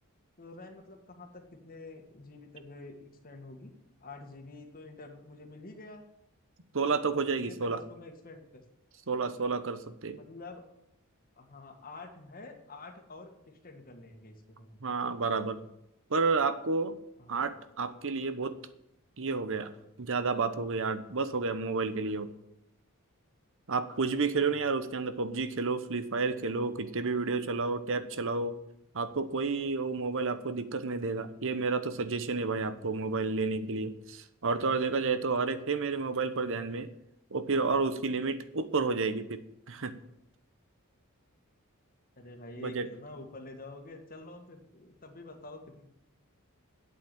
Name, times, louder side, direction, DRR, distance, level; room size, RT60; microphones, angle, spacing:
voice 1, 0.4-3.7 4.0-6.0 7.0-8.6 10.1-10.6 11.4-14.8 17.2-17.6 24.3-24.5 42.2-45.8, left 2 dB, 40° left, 4 dB, 1.8 m, -48 dB
voice 2, 6.7-7.8 9.1-10.2 14.8-15.6 16.1-17.0 17.3-18.5 19.2-19.7 20.0-22.3 23.7-28.6 28.9-36.9 37.3-39.9 42.6-42.9, right 4 dB, 60° right, 12 dB, 1.0 m, -31 dB
8.7 x 8.2 x 8.9 m, 0.82 s
head